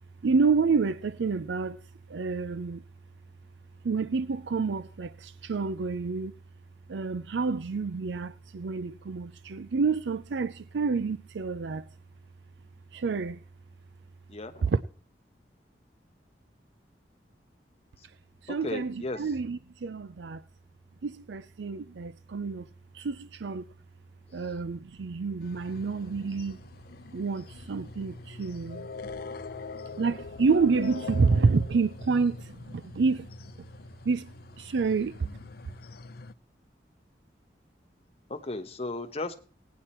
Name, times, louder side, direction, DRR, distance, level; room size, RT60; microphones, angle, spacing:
voice 1, 0.2-1.8 2.1-2.8 3.8-6.3 6.9-11.8 12.9-13.4 14.7-14.8 18.4-20.4 21.0-22.7 22.9-23.6 24.3-26.6 27.1-28.9 30.0-33.3 34.1-35.2, right 4 dB, 80° right, 0.5 m, -28 dB
voice 2, 14.3-14.7 18.5-19.3 24.3-24.6 38.3-39.3, left 2 dB, 35° left, 1.1 m, -36 dB
sound 1, 25.4-36.3, left 4 dB, 60° left, 0.6 m, -44 dB
17.5 x 9.4 x 4.3 m
head